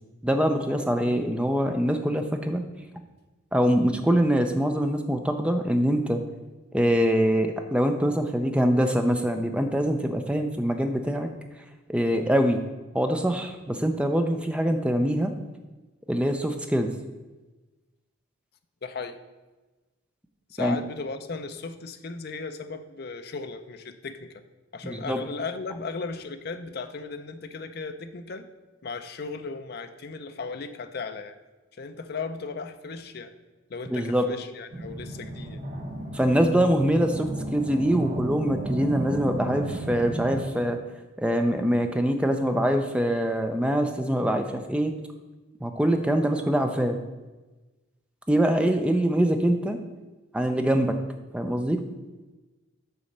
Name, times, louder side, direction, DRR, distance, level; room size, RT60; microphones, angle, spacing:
voice 1, 0.2-2.6 3.5-6.2 6.7-11.3 11.9-12.6 12.9-15.3 16.1-16.9 20.6-20.8 24.8-25.2 33.9-34.2 36.1-40.8 41.2-44.9 45.6-47.0 48.3-49.8 50.3-51.0 51.3-51.8, equal, 5° right, 5 dB, 0.5 m, -24 dB
voice 2, 18.8-19.2 20.5-24.4 24.7-28.5 28.8-31.4 31.7-33.3 33.7-35.6, left 4 dB, 50° left, 9 dB, 0.5 m, -36 dB
sound 1, 34.7-40.4, right 1 dB, 35° right, 1.0 m, -33 dB
7.0 x 4.1 x 6.5 m, 1.2 s
head